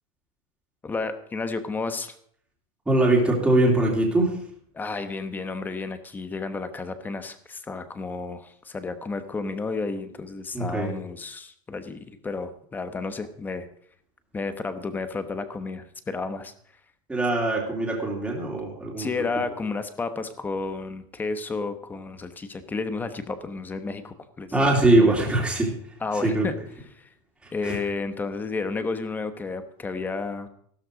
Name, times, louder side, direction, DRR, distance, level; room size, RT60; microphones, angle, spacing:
voice 1, 0.8-2.1 4.7-13.7 14.3-16.5 19.0-24.5 24.9-25.1 26.0-26.5 26.9-27.1 27.5-30.5, left 4 dB, 10° left, 10 dB, 1.1 m, -32 dB
voice 2, 2.9-4.3 10.5-10.9 17.1-19.1 24.5-25.7 26.2-26.4 27.6-27.8, right 2 dB, 5° right, -2 dB, 2.9 m, -22 dB
15.5 x 13.0 x 5.1 m, 0.62 s
supercardioid pair, 175°, 18 cm